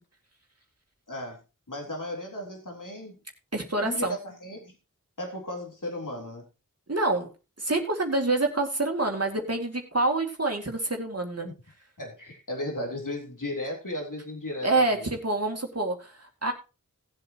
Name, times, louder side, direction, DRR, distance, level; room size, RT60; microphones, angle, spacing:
voice 1, 1.1-1.4 1.7-3.2 3.8-4.7 5.2-6.4 11.4-11.5 12.0-15.1, left 1 dB, 70° left, 0 dB, 3.6 m, -35 dB
voice 2, 3.5-4.2 6.9-7.3 7.6-11.5 14.6-16.5, right 2 dB, 50° right, 2 dB, 2.4 m, -27 dB
18.0 x 8.0 x 3.0 m, 0.30 s
wide cardioid pair, 45°, 33 cm